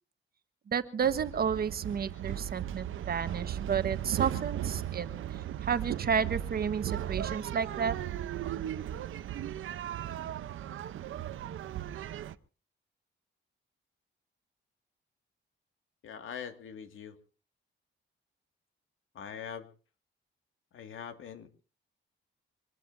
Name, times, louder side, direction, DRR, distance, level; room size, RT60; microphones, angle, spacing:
voice 1, 0.7-5.1 5.6-8.0, right 7 dB, 50° right, 10 dB, 1.3 m, -31 dB
sound 1, 1.0-12.3, right 11 dB, 85° right, 0.8 m, -36 dB
voice 2, 16.0-17.2 19.1-19.7 20.7-21.6, left 7 dB, 80° left, 8 dB, 2.1 m, -43 dB
25.0 x 20.0 x 2.7 m, 0.37 s
wide cardioid pair, 140°, 20 cm